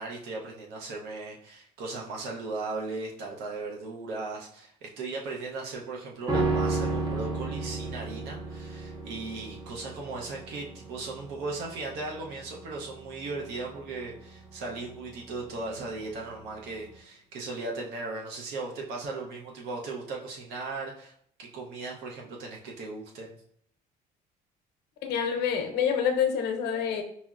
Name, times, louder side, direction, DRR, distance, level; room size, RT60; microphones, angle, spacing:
voice 1, 0.0-21.1 21.4-23.4, right 3 dB, 80° right, -1 dB, 0.7 m, -37 dB
sound 1, 6.3-15.7 16.0-16.1, right 3 dB, 25° right, 0.7 m, -33 dB
voice 2, 25.0-27.0, left 7 dB, 80° left, 4 dB, 0.6 m, -27 dB
5.5 x 2.0 x 2.4 m, 0.66 s
cardioid pair, 110°, 17 cm